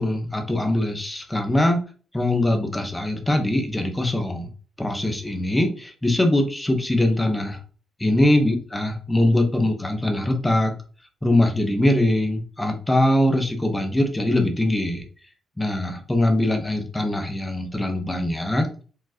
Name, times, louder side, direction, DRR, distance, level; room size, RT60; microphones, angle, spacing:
voice 1, 0.0-1.8 2.1-4.5 4.8-7.6 8.0-10.7 11.2-15.0 15.6-18.8, left 1 dB, 10° left, 4 dB, 1.1 m, -22 dB
4.9 x 3.7 x 2.9 m, 0.39 s
cardioid pair, 90°, 0 cm